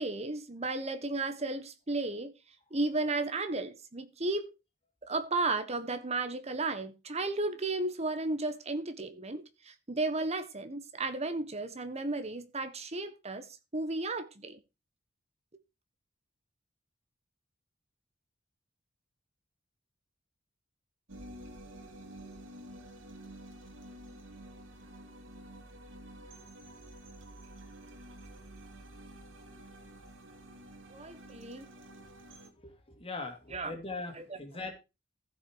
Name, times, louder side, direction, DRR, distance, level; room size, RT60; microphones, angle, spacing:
voice 1, 0.0-2.3 2.7-4.5 5.0-13.5 13.7-14.6 30.9-31.7 33.5-33.7 34.2-34.3, right 2 dB, 35° right, 1.4 m, -34 dB
sound 1, 21.1-32.5, right 1 dB, 90° right, 2.4 m, -50 dB
voice 2, 32.5-34.7, left 3 dB, 30° left, 2.7 m, -41 dB
14.5 x 6.2 x 4.7 m
head